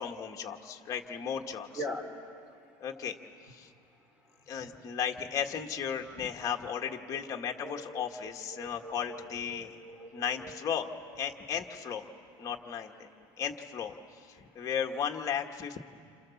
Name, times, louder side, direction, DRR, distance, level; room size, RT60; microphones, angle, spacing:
voice 1, 0.0-1.7 2.8-3.2 3.4-3.7 4.5-9.8 10.1-10.9 11.2-12.1 12.4-13.1 13.4-15.8, left 8 dB, 25° left, 2 dB, 1.5 m, -35 dB
voice 2, 1.7-2.6 3.9-4.7 6.8-10.6 12.1-12.5 13.0-13.4, equal, 10° right, 4 dB, 3.0 m, -45 dB
28.5 x 28.5 x 7.2 m, 2.2 s
cardioid pair, 165°, 12 cm